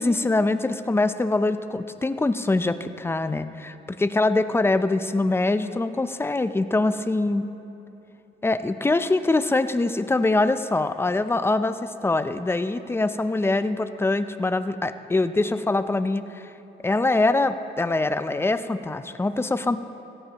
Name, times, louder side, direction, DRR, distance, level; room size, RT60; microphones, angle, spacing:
voice 1, 0.0-7.4 8.4-16.5 16.8-19.8, left 2 dB, 10° left, 11 dB, 0.5 m, -23 dB
16.5 x 14.0 x 2.9 m, 2.9 s
cardioid pair, 90°, 20 cm